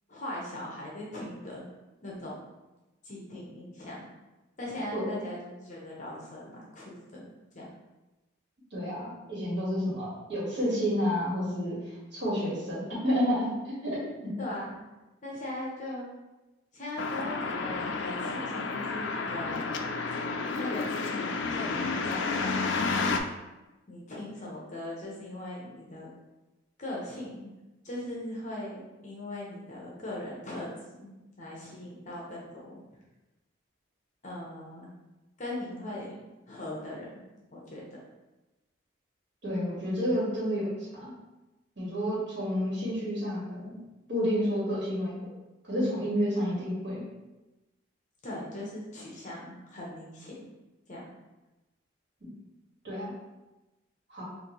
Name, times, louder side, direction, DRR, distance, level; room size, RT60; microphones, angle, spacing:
voice 1, 0.1-1.7 2.0-2.4 3.0-4.0 4.6-7.2 7.5-7.7 14.4-14.7 15.2-16.1 16.7-19.7 20.6-23.2 23.9-26.1 26.8-27.5 27.8-30.7 31.0-31.1 31.4-32.8 34.2-34.9 35.4-36.2 36.5-37.0 37.5-37.8 48.2-50.4 50.9-51.1, left 1 dB, 35° left, -4 dB, 0.8 m, -39 dB
voice 2, 4.9-5.3 8.7-14.3 39.4-41.1 41.8-43.8 44.1-45.3 45.6-47.0 52.2-52.3 52.8-53.1 54.1-54.2, equal, 55° right, -7 dB, 1.5 m, -30 dB
sound 1, 17.0-23.2, left 4 dB, 65° left, 0.3 m, -31 dB
4.1 x 2.6 x 3.0 m, 1.1 s
head